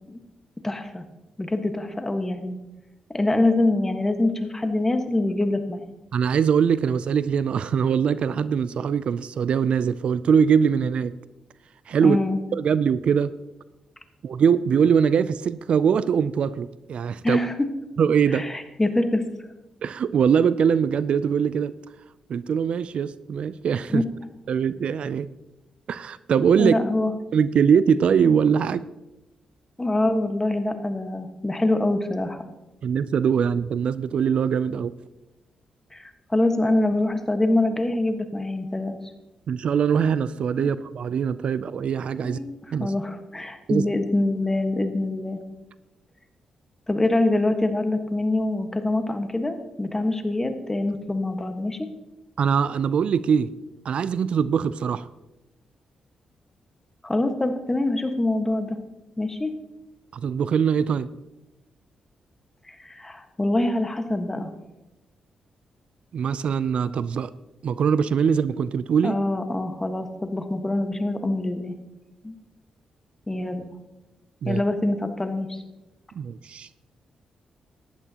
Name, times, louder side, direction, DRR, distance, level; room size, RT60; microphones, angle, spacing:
voice 1, 0.6-1.0 1.4-2.6 3.1-5.9 12.0-12.4 17.2-17.7 18.3-19.2 23.9-24.0 26.6-27.1 29.8-32.4 35.9-39.0 40.6-40.7 42.2-45.4 46.9-51.9 57.0-58.8 59.2-59.5 62.7-64.5 69.0-71.7 72.2-72.3 73.3-73.7 74.4-75.6, left 2 dB, 20° left, 6 dB, 1.4 m, -25 dB
voice 2, 6.1-11.1 11.9-12.2 12.5-13.3 14.2-17.4 18.0-18.5 19.8-21.7 22.3-24.0 24.5-25.3 25.9-26.7 27.3-28.9 32.8-34.9 39.5-42.4 42.7-42.9 43.7-43.8 52.4-53.5 53.8-55.1 60.1-61.1 66.1-67.3 67.6-69.2 74.4-74.6 76.1-76.7, right 7 dB, 65° right, 16 dB, 0.4 m, -22 dB
15.0 x 11.0 x 2.9 m, 1.0 s
cardioid pair, 65°, 2 cm